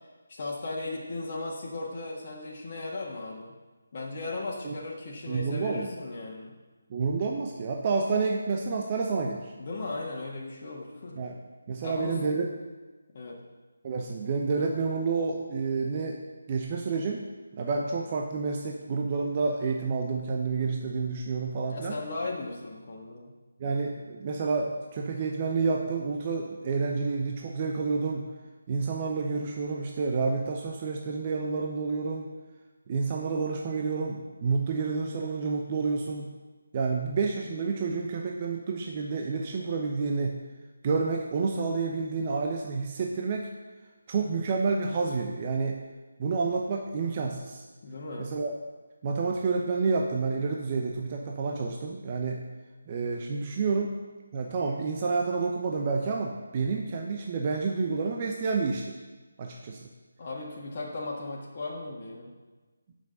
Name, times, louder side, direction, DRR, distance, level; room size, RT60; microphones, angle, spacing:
voice 1, 0.3-3.5 3.9-6.5 9.6-11.2 11.8-12.2 13.1-13.4 21.6-23.3 47.8-48.3 60.2-62.3, left 2 dB, 40° left, -3 dB, 1.7 m, -36 dB
voice 2, 5.3-5.9 6.9-9.5 11.2-11.4 11.7-12.5 13.8-16.2 16.5-22.0 23.6-28.2 28.7-32.3 32.9-36.3 36.7-40.4 40.8-43.5 44.1-45.8 46.2-47.6 48.2-48.5 49.0-52.4 52.9-54.0 54.3-59.0 59.4-59.9, right 4 dB, 30° right, 0 dB, 0.8 m, -29 dB
6.9 x 6.1 x 6.8 m, 1.3 s
figure-of-eight pair, 155°, 0 cm